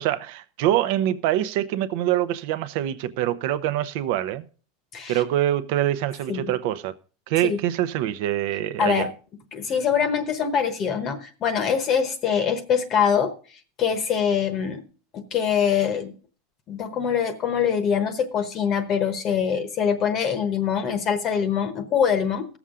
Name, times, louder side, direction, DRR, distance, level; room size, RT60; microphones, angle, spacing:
voice 1, 0.0-4.4 5.1-6.9 7.3-9.1, right 12 dB, 55° right, 0.8 m, -24 dB
voice 2, 9.5-13.3 13.8-14.8 15.1-16.1 16.7-22.5, left 7 dB, 30° left, 1.0 m, -24 dB
18.5 x 7.1 x 3.7 m
supercardioid pair, 165°, 0 cm